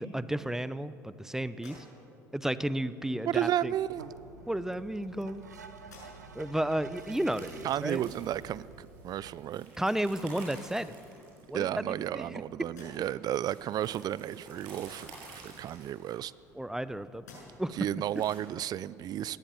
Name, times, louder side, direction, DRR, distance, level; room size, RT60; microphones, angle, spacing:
voice 1, 0.0-1.8 2.3-3.7 4.5-5.4 6.3-8.0 9.8-10.9 11.5-12.4 16.6-17.2 17.6-17.7, right 1 dB, 5° right, 15 dB, 0.9 m, -32 dB
sound 1, 1.5-2.3 3.5-3.6 4.6-5.4 5.8-6.5 7.0-7.1 9.8-9.9 10.3-11.0 11.6-12.3 12.6-13.3 15.3-16.8 17.2-17.8, left 2 dB, 85° left, 6.7 m, -56 dB
voice 2, 3.3-4.1 7.6-9.7 11.5-15.1 15.3-16.3 17.7-19.4, right 11 dB, 45° right, 20 dB, 0.6 m, -33 dB
sound 2, 3.5-9.3, right 4 dB, 90° right, 1.2 m, -49 dB
sound 3, 6.9-18.4, right 3 dB, 65° right, 6.9 m, -52 dB
21.0 x 17.5 x 7.2 m, 2.8 s
hypercardioid pair, 65°, 9 cm